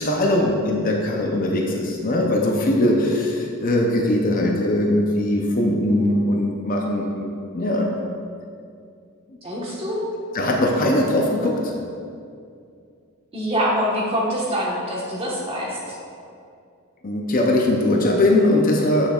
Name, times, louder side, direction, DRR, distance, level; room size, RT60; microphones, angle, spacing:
voice 1, 0.0-7.3 7.5-7.9 10.3-11.7 17.0-19.1, left 1 dB, 40° left, 0 dB, 0.6 m, -20 dB
voice 2, 9.4-10.0 13.3-15.9, equal, 25° right, -4 dB, 1.2 m, -25 dB
8.1 x 6.4 x 2.4 m, 2.4 s
head